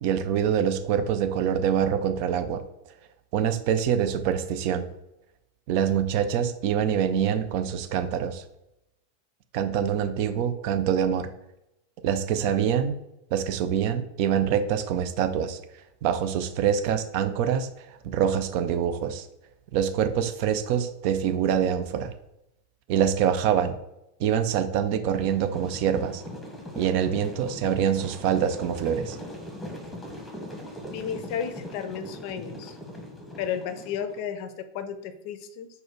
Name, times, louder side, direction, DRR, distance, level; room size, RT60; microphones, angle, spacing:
voice 1, 0.0-2.6 3.3-4.9 5.7-8.4 9.5-11.3 12.0-13.0 13.3-15.6 16.0-19.3 19.7-22.1 22.9-23.8 24.2-26.2 26.8-29.2, right 8 dB, 45° right, 9 dB, 0.4 m, -25 dB
sound 1, 25.1-34.2, left 1 dB, ahead, 1.1 m, -40 dB
voice 2, 30.9-32.7 33.4-35.7, left 8 dB, 45° left, 9 dB, 0.5 m, -33 dB
4.3 x 2.2 x 4.4 m, 0.88 s
figure-of-eight pair, 90°, 0 cm